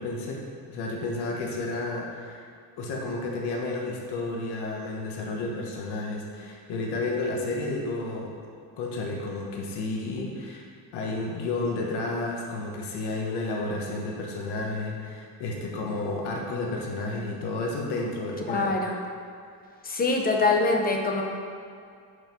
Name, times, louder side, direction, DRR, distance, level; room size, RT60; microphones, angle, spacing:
voice 1, 0.0-2.4 2.8-8.3 8.8-10.7 10.9-18.8, left 2 dB, 85° left, -1 dB, 1.3 m, -31 dB
voice 2, 18.5-19.0 19.8-21.2, left 3 dB, 25° left, 1 dB, 0.8 m, -24 dB
6.7 x 5.3 x 5.9 m, 2.3 s
cardioid pair, 155°, 39 cm